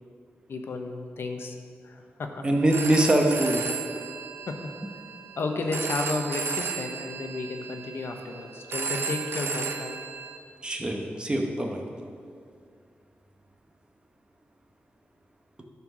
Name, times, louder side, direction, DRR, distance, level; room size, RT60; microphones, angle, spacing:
voice 1, 0.5-1.6 1.8-2.4 4.5-4.6 5.4-10.0, left 3 dB, 70° left, 4 dB, 0.9 m, -32 dB
voice 2, 2.4-3.6 10.6-11.8, right 1 dB, 25° right, 2 dB, 1.0 m, -23 dB
Telephone, 2.5-10.4, right 5 dB, 75° right, 0.7 m, -34 dB
12.0 x 4.5 x 6.1 m, 2.3 s
wide cardioid pair, 115°, 4 cm